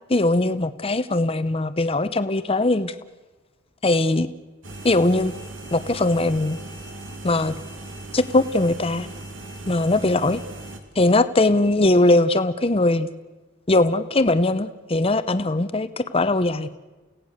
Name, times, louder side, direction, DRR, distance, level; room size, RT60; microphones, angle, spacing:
voice 1, 0.1-2.9 3.8-4.3 4.8-5.3 5.7-6.6 7.2-7.5 8.1-9.1 9.7-10.4 11.0-13.1 13.7-16.7, left 2 dB, 30° left, 12 dB, 0.7 m, -20 dB
sound 1, 4.6-10.8, right 2 dB, 75° right, 2.5 m, -38 dB
29.5 x 17.0 x 6.5 m, 1.2 s
head